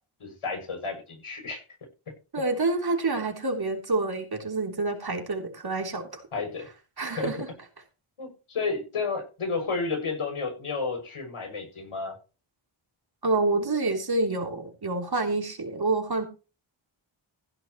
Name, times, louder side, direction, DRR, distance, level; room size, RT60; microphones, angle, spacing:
voice 1, 0.2-1.6 6.3-6.7 7.2-7.5 8.2-12.2, left 4 dB, 85° left, 4 dB, 7.0 m, -31 dB
voice 2, 2.3-6.2 7.0-7.5 13.2-16.2, right 3 dB, 50° right, 3 dB, 3.5 m, -27 dB
15.5 x 11.0 x 3.1 m, 0.32 s
wide cardioid pair, 130°, 49 cm